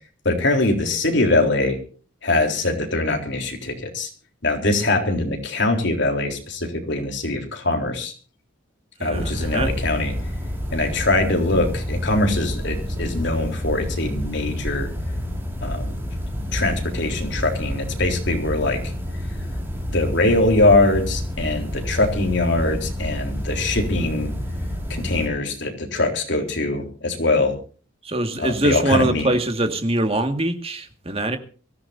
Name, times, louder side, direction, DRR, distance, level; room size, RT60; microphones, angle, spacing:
voice 1, 0.3-1.8 2.2-4.1 4.4-8.1 9.0-10.1 10.7-14.9 15.6-15.9 16.5-18.8 19.9-24.3 24.9-27.6 28.4-29.3, left 2 dB, 60° left, 4 dB, 3.7 m, -22 dB
voice 2, 9.0-9.7 28.0-31.4, right 1 dB, 30° right, 6 dB, 2.0 m, -23 dB
sound 1, 9.1-25.3, equal, 10° right, 3.8 m, -29 dB
23.5 x 15.5 x 2.7 m, 0.39 s
head